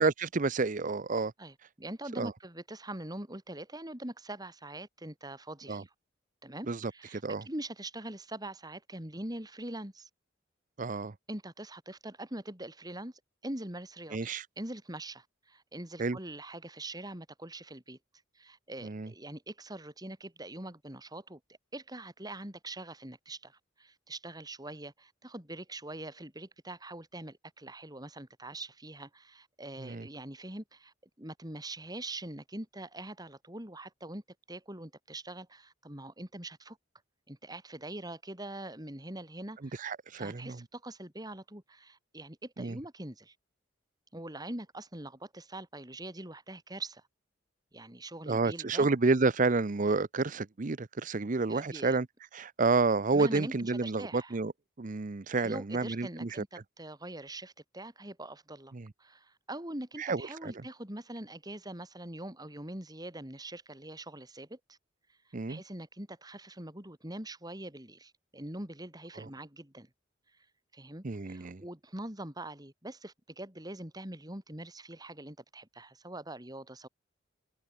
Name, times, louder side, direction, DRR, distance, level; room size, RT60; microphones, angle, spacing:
voice 1, 0.0-1.3 2.2-2.3 5.7-5.8 6.7-6.9 7.2-7.4 10.8-11.1 14.1-14.4 16.0-16.2 18.8-19.1 29.8-30.1 39.6-40.6 42.6-42.8 48.3-52.1 52.3-54.5 54.8-56.4 58.7-58.9 60.0-60.5 65.3-65.6 69.2-69.3 71.0-71.6, right 3 dB, 45° right, 0.7 m, -30 dB
voice 2, 1.4-5.9 6.4-10.1 11.3-13.1 13.4-14.2 14.6-18.0 18.3-21.4 21.7-34.2 34.5-36.8 37.3-39.9 40.1-43.3 44.1-47.0 47.7-48.9 51.5-52.0 53.1-54.4 55.4-58.7 59.0-64.8 65.5-69.9 70.7-76.9, right 1 dB, 20° right, 5.0 m, -43 dB
head